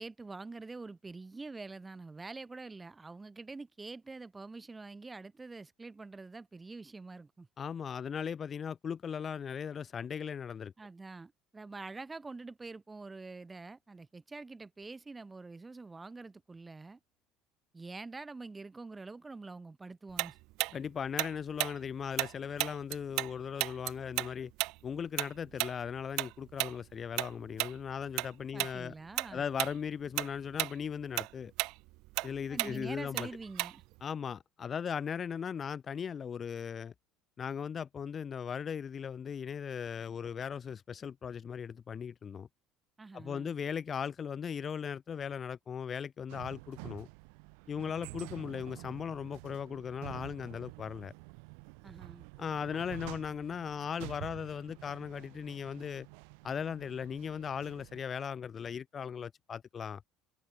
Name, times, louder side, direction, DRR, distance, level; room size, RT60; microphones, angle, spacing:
voice 1, 0.0-7.5 10.8-17.0 17.7-20.4 28.5-29.4 32.5-33.8 43.0-43.6 51.8-52.3, right 3 dB, 15° right, 3.0 m, -46 dB
voice 2, 7.6-10.7 20.7-24.5 24.8-28.9 29.3-31.5 32.2-33.3 34.0-36.9 37.4-42.5 43.1-47.1 47.7-51.1 52.4-56.1 56.4-60.0, left 7 dB, 30° left, 1.4 m, -38 dB
Tick-tock, 20.2-23.3 23.6-28.3 28.6-28.8 29.2-29.8 30.0-34.0, right 22 dB, 70° right, 2.7 m, -34 dB
sound 1, 46.3-58.0, right 40 dB or more, 85° right, 3.5 m, -49 dB
cardioid pair, 135°, 0 cm